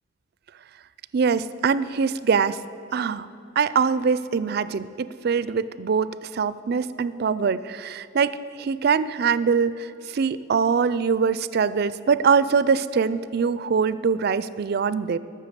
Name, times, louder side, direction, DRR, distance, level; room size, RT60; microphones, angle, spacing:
voice 1, 1.1-2.6 2.9-3.3 3.6-15.2, right 5 dB, 50° right, 16 dB, 0.4 m, -23 dB
13.0 x 6.6 x 8.2 m, 2.7 s
head